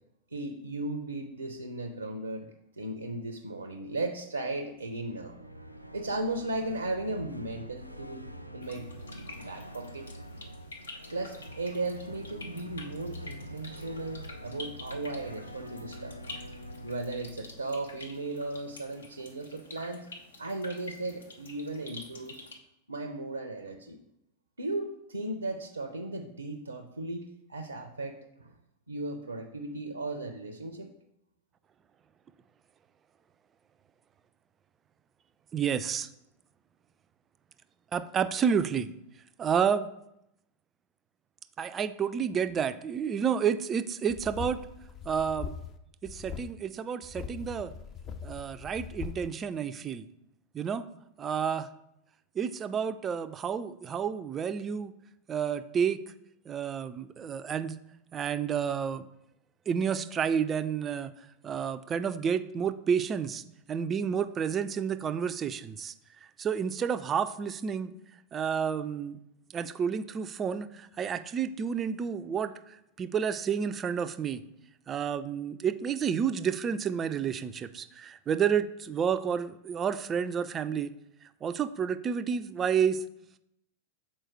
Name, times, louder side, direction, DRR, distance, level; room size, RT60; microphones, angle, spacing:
voice 1, 0.3-2.5 2.8-5.4 5.9-8.2 8.5-8.9 9.5-10.1 11.1-16.1 16.8-20.1 20.4-22.4 22.9-24.0 24.6-28.5 28.9-30.9, right 2 dB, 80° right, 6 dB, 0.5 m, -36 dB
sound 1, 4.7-18.7, equal, 90° left, 0.4 m, -45 dB
sound 2, 8.6-22.5, left 2 dB, 70° left, 0.9 m, -48 dB
voice 2, 35.5-36.1 37.9-38.9 39.4-39.9 41.6-44.6 45.1-45.6 46.0-47.7 48.2-50.0 50.5-50.8 51.2-51.7 52.4-54.9 55.3-56.0 56.5-57.8 58.1-59.1 59.7-61.1 61.4-63.4 63.7-65.9 66.4-67.9 68.3-69.2 69.5-74.4 74.9-80.9 81.4-83.0, right 7 dB, 25° right, 11 dB, 0.4 m, -30 dB
sound 3, 44.1-45.8 46.0-46.5 47.0-49.3, left 7 dB, 30° left, 0.5 m, -41 dB
6.3 x 4.4 x 4.5 m, 0.82 s
figure-of-eight pair, 90°, 0 cm